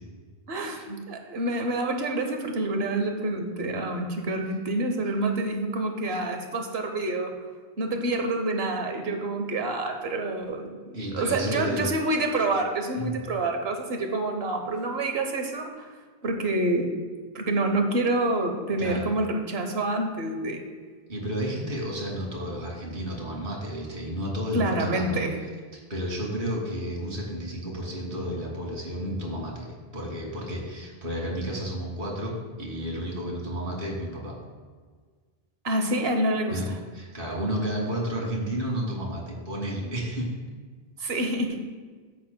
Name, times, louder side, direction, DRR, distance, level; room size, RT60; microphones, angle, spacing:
voice 1, 0.5-7.3 7.8-15.9 16.2-16.9 17.3-20.6 24.5-25.4 35.6-36.6 41.0-41.7, right 2 dB, 75° right, 4 dB, 1.3 m, -27 dB
voice 2, 10.9-11.9 12.9-13.1 18.8-19.1 21.1-25.2 25.7-34.3 36.5-40.3, equal, 60° right, -2 dB, 2.3 m, -32 dB
13.0 x 8.3 x 2.2 m, 1.5 s
omnidirectional pair, 1.0 m